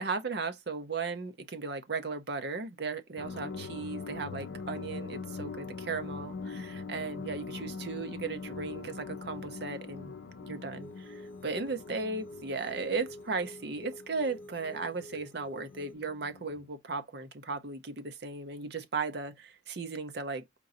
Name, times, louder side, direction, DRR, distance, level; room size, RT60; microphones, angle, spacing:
voice 1, 0.0-10.1 10.4-20.4, right 4 dB, 55° right, 0.7 m, -36 dB
sound 1, 3.2-16.7, left 4 dB, 80° left, 0.5 m, -43 dB
sound 2, 10.8-15.9, left 1 dB, 10° left, 0.4 m, -49 dB
4.5 x 2.7 x 3.9 m
head